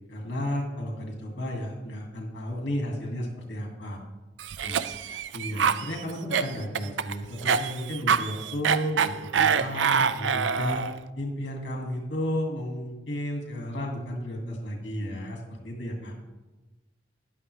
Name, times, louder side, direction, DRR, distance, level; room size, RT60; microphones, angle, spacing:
voice 1, 0.1-4.0 4.6-4.8 5.3-10.9 11.2-16.1, equal, 85° left, 0 dB, 2.2 m, -33 dB
Cough, 4.4-11.0, right 6 dB, 90° right, 0.4 m, -26 dB
voice 2, 4.6-5.7 16.1-16.2, right 3 dB, 40° right, 4 dB, 1.0 m, -51 dB
13.0 x 10.5 x 3.3 m, 1.1 s
head